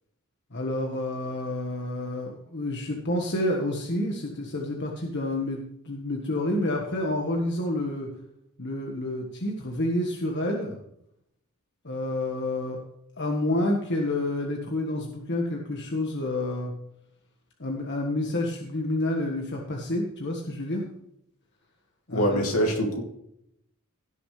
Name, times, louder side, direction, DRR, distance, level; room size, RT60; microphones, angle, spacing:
voice 1, 0.5-5.6 5.8-8.1 8.6-10.8 11.8-12.8 13.2-16.7 17.6-20.8 22.1-22.4, left 1 dB, 50° left, 1 dB, 1.5 m, -29 dB
voice 2, 22.1-23.0, equal, 75° left, 1 dB, 2.8 m, -24 dB
17.0 x 7.1 x 3.3 m, 0.74 s
head